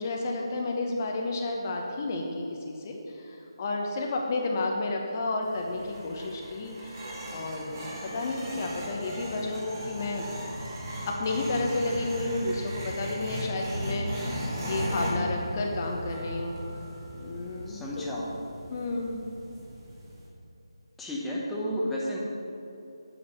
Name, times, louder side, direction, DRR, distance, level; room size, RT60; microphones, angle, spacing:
voice 1, 0.0-10.3 11.0-16.6 17.1-18.3 18.7-19.2, left 2 dB, 30° left, 1 dB, 1.0 m, -32 dB
sound 1, 5.4-20.3, equal, 35° right, 2.2 m, -37 dB
voice 2, 17.7-18.3 21.0-22.2, equal, 5° left, -6 dB, 1.0 m, -32 dB
8.9 x 7.9 x 5.4 m, 2.9 s
figure-of-eight pair, 155°, 3 cm